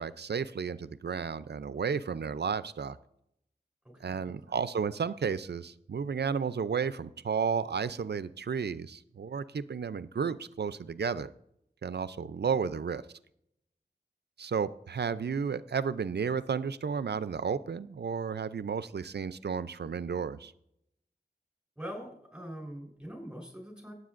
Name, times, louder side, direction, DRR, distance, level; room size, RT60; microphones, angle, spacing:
voice 1, 0.0-3.0 4.0-11.3 11.8-13.0 14.4-20.5, right 6 dB, 70° right, 15 dB, 0.5 m, -32 dB
voice 2, 3.8-4.6 21.8-23.9, equal, 5° right, -1 dB, 4.0 m, -43 dB
18.0 x 8.0 x 2.5 m, 0.75 s
wide cardioid pair, 45°, 18 cm